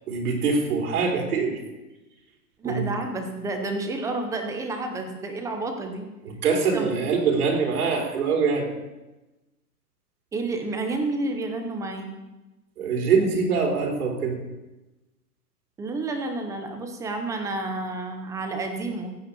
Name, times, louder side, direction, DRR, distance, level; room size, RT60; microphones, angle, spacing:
voice 1, 0.1-1.6 2.6-2.9 6.2-8.6 12.8-14.4, right 5 dB, 60° right, 1 dB, 3.7 m, -23 dB
voice 2, 2.6-6.0 6.7-6.9 10.3-12.1 15.8-19.2, right 2 dB, 5° right, 5 dB, 0.8 m, -30 dB
16.0 x 5.7 x 8.4 m, 1.1 s
hypercardioid pair, 155°, 49 cm